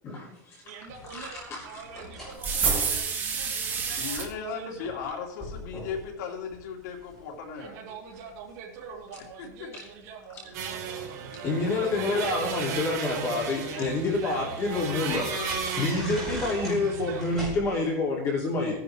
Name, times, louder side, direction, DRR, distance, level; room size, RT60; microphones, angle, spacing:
voice 1, 0.0-2.0 9.1-9.2 9.7-9.9 10.3-10.4 11.4-18.8, left 3 dB, 30° left, -3 dB, 2.9 m, -29 dB
voice 2, 0.6-5.0 7.6-11.4 11.9-12.3 13.1-13.2 13.7-13.9 14.1-14.5 14.8-15.1 15.9-16.0 16.4-17.2, right 6 dB, 45° right, -6 dB, 3.3 m, -44 dB
sound 1, 0.9-4.3 4.8-5.1 5.4-6.1 6.5-7.2 7.8-9.3 10.4-10.6 11.8-13.2 13.7-13.9 14.2-14.3 14.8-16.8 17.1-17.9, equal, 5° left, 5.6 m, -40 dB
sound 2, 2.4-4.3, right 5 dB, 20° right, 1.9 m, -28 dB
voice 3, 4.0-7.8 9.2-9.7 11.9-12.2 12.8-12.9 13.7-14.0 14.3-14.4, left 5 dB, 80° left, -1 dB, 3.1 m, -37 dB
sound 3, 10.5-17.4, right 6 dB, 70° right, 3.7 m, -35 dB
16.0 x 10.5 x 3.4 m, 0.73 s
supercardioid pair, 165°, 9 cm